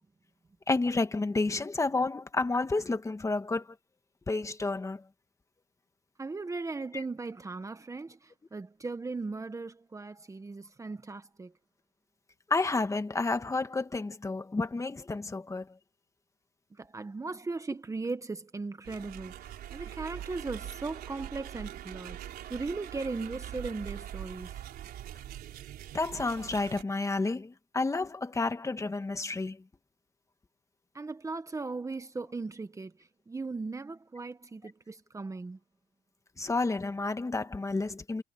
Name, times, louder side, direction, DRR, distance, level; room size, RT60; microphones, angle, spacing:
voice 1, 0.7-3.7 4.3-5.0 6.9-7.0 12.5-15.7 25.9-29.6 36.4-38.2, left 3 dB, 20° left, 1.8 m, -30 dB
voice 2, 6.2-11.5 16.8-19.3 19.7-22.2 22.5-24.5 30.9-32.9 33.3-35.6, right 3 dB, 20° right, 1.4 m, -38 dB
sound 1, 18.8-26.8, right 11 dB, 65° right, 4.0 m, -43 dB
cardioid pair, 110°, 17 cm